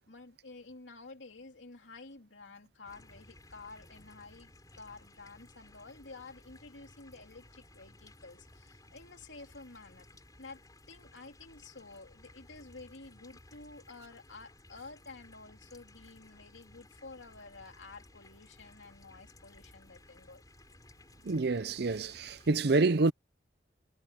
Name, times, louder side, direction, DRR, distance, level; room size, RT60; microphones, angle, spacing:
voice 1, 0.0-10.6 10.9-20.4, left 3 dB, 90° left, 3.1 m, -51 dB
sound 1, 2.8-22.6, left 2 dB, 20° left, 4.2 m, -58 dB
voice 2, 21.2-23.1, right 3 dB, 60° right, 0.6 m, -27 dB
head